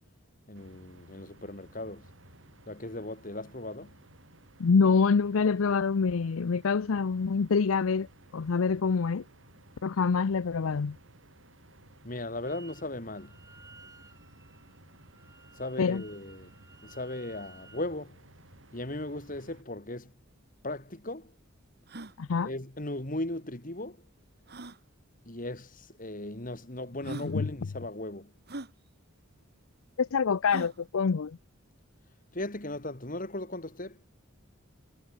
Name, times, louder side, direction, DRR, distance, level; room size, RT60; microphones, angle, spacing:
voice 1, 0.5-2.1 2.7-4.0 12.0-13.4 15.6-16.5 16.8-18.2 18.7-20.1 20.6-21.4 22.4-24.1 25.3-28.3 32.3-34.1, left 1 dB, 40° left, 2.7 m, -37 dB
sound 1, 0.5-19.6, right 1 dB, 65° right, 7.0 m, -57 dB
voice 2, 4.6-8.1 8.3-9.2 9.8-11.0 15.8-16.0 22.2-22.5 27.2-27.5 30.0-31.4, left 5 dB, 80° left, 0.5 m, -26 dB
Wind instrument woodwind instrument, 12.4-12.9 13.1-17.9, right 3 dB, 15° right, 4.3 m, -56 dB
sound 2, 20.3-20.4 20.6-20.7 21.2-21.3 21.8-22.2 23.5-23.6 24.5-24.8 25.8-25.9 26.6-26.7 27.0-27.3 28.5-28.7 30.5-30.8, right 2 dB, 50° right, 1.6 m, -41 dB
head